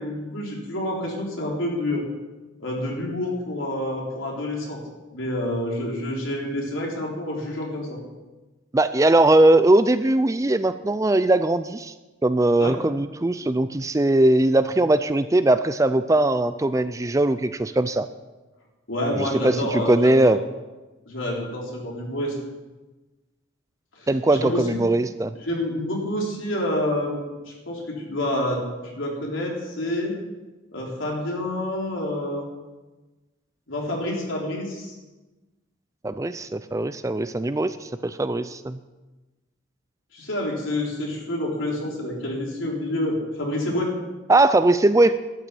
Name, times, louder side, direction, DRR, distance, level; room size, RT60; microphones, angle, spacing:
voice 1, 0.0-2.1 2.6-4.8 5.1-8.0 12.6-12.8 18.9-20.3 21.1-22.4 24.0-24.8 25.4-30.1 30.7-32.5 33.7-34.9 40.1-44.0, left 1 dB, 75° left, -2 dB, 3.9 m, -28 dB
voice 2, 8.7-11.9 12.2-18.1 19.1-20.4 24.1-25.3 36.0-38.8 44.3-45.2, right 2 dB, 15° right, 12 dB, 0.4 m, -20 dB
12.5 x 9.0 x 8.4 m, 1.2 s
head